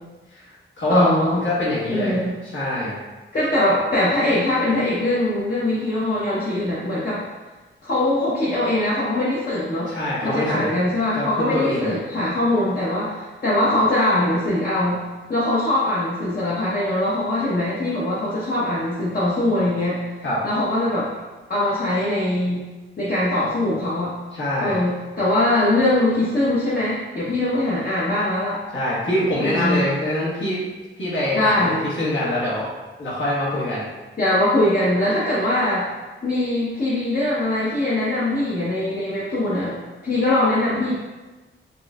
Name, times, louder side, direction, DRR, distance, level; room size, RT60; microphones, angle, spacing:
voice 1, 0.3-1.1 1.3-2.1 2.5-2.9 9.9-10.7 11.1-11.9 20.2-20.4 24.3-24.8 28.7-30.6 31.0-31.7 32.0-32.7 33.0-33.8, left 1 dB, 65° left, -9 dB, 1.1 m, -24 dB
voice 2, 0.9-1.4 1.9-2.4 3.3-7.2 7.8-9.9 10.2-15.0 15.3-20.0 20.4-21.1 21.5-22.6 23.0-24.1 24.6-28.6 29.4-29.9 31.3-31.9 34.2-35.9 36.2-39.8 40.0-41.0, left 1 dB, 50° left, -9 dB, 0.8 m, -22 dB
4.2 x 2.6 x 2.3 m, 1.2 s
wide cardioid pair, 80°, 21 cm